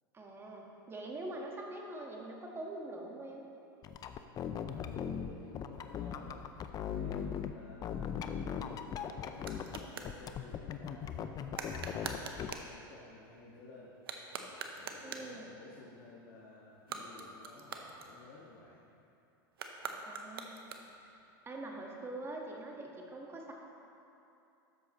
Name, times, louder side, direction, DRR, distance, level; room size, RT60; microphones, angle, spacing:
voice 1, 0.1-3.4 15.0-15.6 20.1-20.7 21.0-21.2 21.4-23.5, right 2 dB, 20° right, 0 dB, 1.5 m, -44 dB
sound 1, 3.8-7.5 7.8-9.8 10.0-12.5, left 8 dB, 30° left, 0.5 m, -39 dB
voice 2, 4.6-6.4 6.8-11.2 11.6-13.9 14.7-18.8, left 3 dB, 55° left, -6 dB, 1.8 m, -53 dB
sound 2, 8.4-10.2 11.5-12.7 13.9-15.4 16.7-18.6 19.5-21.1, right 5 dB, 85° right, 0.8 m, -44 dB
12.5 x 8.0 x 3.1 m, 2.8 s
hypercardioid pair, 105°, 12 cm